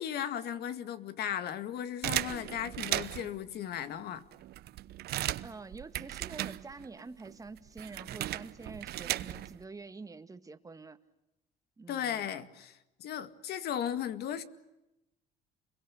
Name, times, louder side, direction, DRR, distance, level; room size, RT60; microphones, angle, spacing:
voice 1, 0.0-4.3 11.9-14.4, left 9 dB, 70° left, 2.1 m, -36 dB
sound 1, 2.0-3.4 4.0-4.1 4.3-7.0 7.2-9.6, right 14 dB, 70° right, 1.0 m, -36 dB
voice 2, 5.4-11.0 11.8-12.3, right 4 dB, 20° right, 1.8 m, -47 dB
29.0 x 22.5 x 8.5 m
cardioid pair, 110°, 17 cm